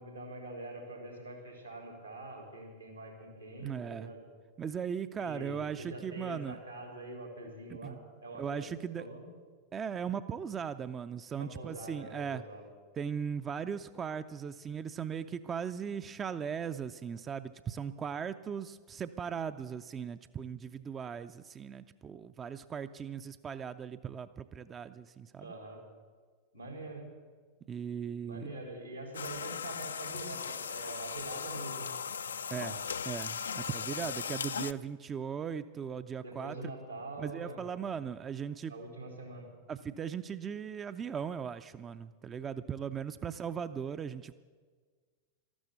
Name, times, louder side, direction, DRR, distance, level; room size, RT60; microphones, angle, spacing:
voice 1, 0.0-4.2 5.2-8.7 9.0-9.2 11.3-12.6 25.4-25.8 26.5-27.0 28.2-31.9 33.9-34.1 36.2-37.7 38.7-39.6, right 2 dB, 90° right, 2 dB, 4.0 m, -44 dB
voice 2, 3.6-4.1 4.6-6.6 7.8-8.0 8.4-9.1 9.7-12.4 13.0-25.5 27.7-28.5 32.5-32.8 33.1-36.6 37.2-38.7 39.7-44.3, right 7 dB, 25° right, 11 dB, 0.4 m, -38 dB
sound 1, 29.1-34.7, left 6 dB, 70° left, 0.4 m, -38 dB
13.5 x 12.5 x 8.2 m, 1.5 s
figure-of-eight pair, 90°, 0 cm